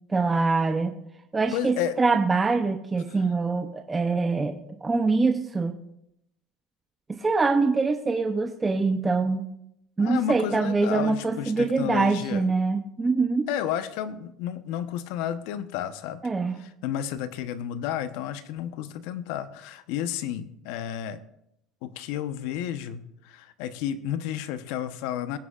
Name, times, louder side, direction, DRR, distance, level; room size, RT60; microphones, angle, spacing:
voice 1, 0.1-1.0 1.3-5.8 7.1-9.4 10.0-13.5 16.2-16.6, right 4 dB, 15° right, 6 dB, 0.6 m, -24 dB
voice 2, 1.5-2.0 10.0-12.4 13.5-16.2 16.6-21.2 21.8-25.4, left 10 dB, 70° left, 12 dB, 0.9 m, -32 dB
20.5 x 9.9 x 2.4 m, 0.79 s
cardioid pair, 145°, 0 cm